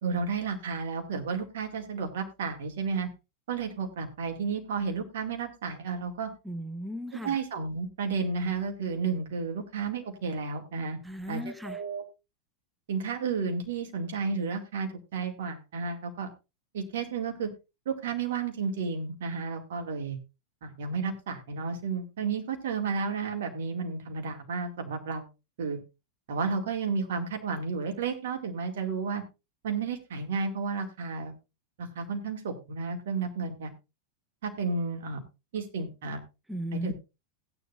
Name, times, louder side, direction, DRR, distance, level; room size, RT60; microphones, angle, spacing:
voice 1, 0.0-3.1 3.5-6.3 7.2-11.0 11.3-12.0 12.9-16.3 16.7-17.5 17.9-20.2 20.6-25.3 25.6-25.8 26.3-29.2 29.6-31.3 31.8-33.7 34.4-35.2 35.5-36.2 36.7-36.9, right 5 dB, 55° right, 3 dB, 2.3 m, -32 dB
voice 2, 6.4-7.4 11.0-11.8 36.5-36.9, equal, 5° right, 10 dB, 0.6 m, -36 dB
15.5 x 9.9 x 2.6 m, 0.27 s
figure-of-eight pair, 90°, 0 cm